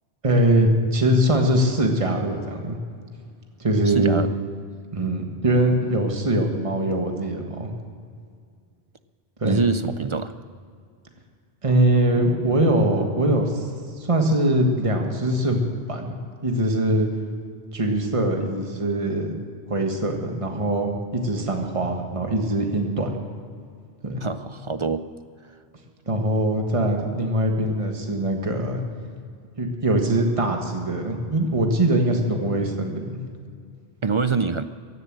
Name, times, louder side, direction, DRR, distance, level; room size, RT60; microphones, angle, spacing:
voice 1, 0.2-2.8 3.6-4.2 4.9-7.7 9.4-9.6 11.6-13.7 14.0-15.6 15.9-16.2 16.4-17.1 17.7-19.3 19.7-23.1 24.0-24.2 26.1-28.8 29.6-33.2, right 1 dB, 30° right, 3 dB, 1.6 m, -22 dB
voice 2, 3.9-4.3 9.4-10.3 24.2-25.1 34.0-34.6, right 4 dB, 45° right, 11 dB, 0.4 m, -24 dB
15.5 x 11.0 x 7.5 m, 2.2 s
omnidirectional pair, 1.1 m